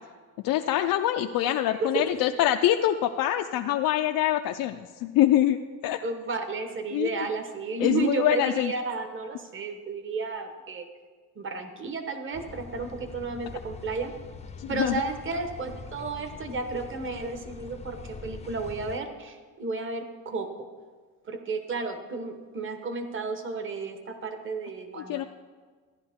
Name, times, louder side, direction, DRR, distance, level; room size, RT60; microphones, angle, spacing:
voice 1, 0.4-6.0 6.9-7.1 7.8-8.7 14.6-15.0 25.0-25.2, left 12 dB, 75° left, 6 dB, 0.5 m, -25 dB
voice 2, 1.8-2.2 6.0-10.9 11.3-14.1 14.7-20.7 21.3-25.3, right 4 dB, 35° right, 7 dB, 1.3 m, -32 dB
sound 1, 12.3-19.0, left 5 dB, 20° left, 0.6 m, -43 dB
14.5 x 11.0 x 3.6 m, 1.5 s
cardioid pair, 120°, 35 cm